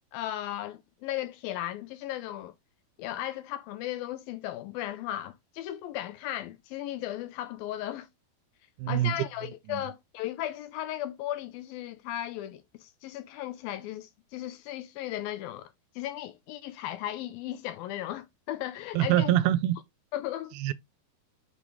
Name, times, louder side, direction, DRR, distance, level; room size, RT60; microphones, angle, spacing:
voice 1, 0.1-2.5 3.0-8.1 8.9-19.3 20.1-20.7, left 13 dB, 80° left, 2.3 m, -36 dB
voice 2, 8.8-9.1 9.7-9.8 18.9-19.8 20.6-20.7, right 13 dB, 85° right, 2.5 m, -24 dB
6.7 x 5.1 x 3.5 m
omnidirectional pair, 4.4 m